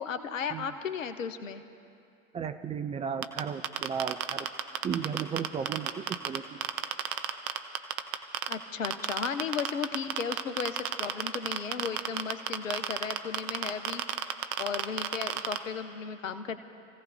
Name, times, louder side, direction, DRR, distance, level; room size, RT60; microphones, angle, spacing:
voice 1, 0.0-1.6 8.5-14.0 14.6-16.6, left 6 dB, 75° left, 10 dB, 1.0 m, -35 dB
voice 2, 2.3-4.5 4.8-6.6, right 7 dB, 15° right, 9 dB, 0.4 m, -34 dB
sound 1, 3.2-6.4 6.6-8.5 8.8-15.6, right 13 dB, 45° right, 0.9 m, -30 dB
28.0 x 16.0 x 2.7 m, 2.6 s
figure-of-eight pair, 85°, 39 cm